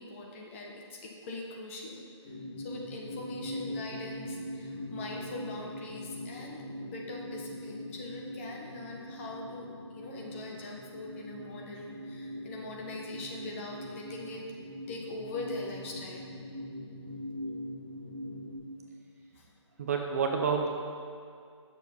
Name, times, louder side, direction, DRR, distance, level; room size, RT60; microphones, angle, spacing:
voice 1, 0.0-9.7 9.9-14.4 14.9-16.3 19.3-19.5, left 2 dB, 25° left, -1 dB, 1.3 m, -42 dB
sound 1, 2.2-18.6, left 1 dB, 85° left, 2.3 m, -42 dB
voice 2, 19.8-20.7, right 6 dB, 30° right, 3 dB, 0.6 m, -28 dB
9.1 x 6.8 x 5.4 m, 2.3 s
figure-of-eight pair, 155°, 16 cm